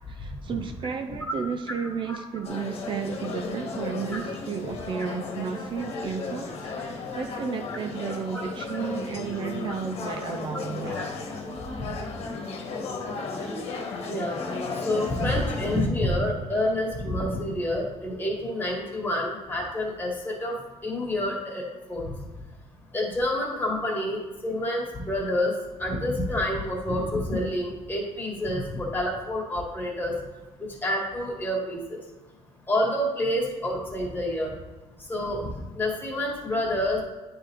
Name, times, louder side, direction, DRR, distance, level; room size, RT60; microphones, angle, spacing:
voice 1, 0.1-11.1 12.0-12.1, right 6 dB, 45° right, 7 dB, 0.5 m, -33 dB
sound 1, 2.4-15.9, left 3 dB, 55° left, 1.4 m, -34 dB
voice 2, 14.1-14.4 14.8-20.6 20.8-22.1 22.9-25.5 25.8-30.1 30.8-32.0 32.7-34.5 35.1-35.5 35.8-37.0, left 1 dB, 15° left, -2 dB, 2.0 m, -28 dB
9.3 x 3.8 x 4.0 m, 1.2 s
cardioid pair, 125°, 12 cm